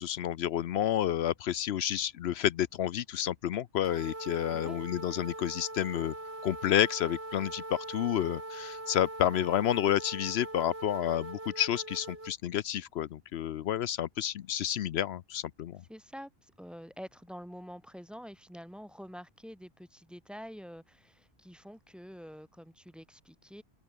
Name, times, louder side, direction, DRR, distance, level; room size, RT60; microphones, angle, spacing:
voice 1, 0.0-6.1 6.4-15.8, left 11 dB, 80° left, 0.9 m, -30 dB
sound 1, 3.8-12.3, right 2 dB, 75° right, 5.4 m, -42 dB
voice 2, 15.9-23.6, equal, ahead, 4.7 m, -47 dB
open air
omnidirectional pair, 1.1 m